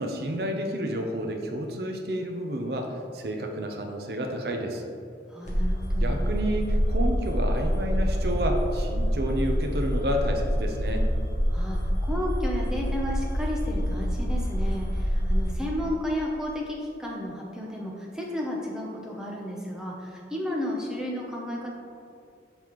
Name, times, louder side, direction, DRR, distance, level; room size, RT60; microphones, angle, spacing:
voice 1, 0.0-4.8 6.0-11.1, equal, 55° right, 3 dB, 0.6 m, -30 dB
voice 2, 5.3-6.1 11.5-21.7, left 1 dB, 5° right, -3 dB, 0.7 m, -33 dB
sound 1, 5.5-15.5, equal, 40° left, 1.0 m, -26 dB
6.6 x 5.4 x 3.1 m, 2.5 s
head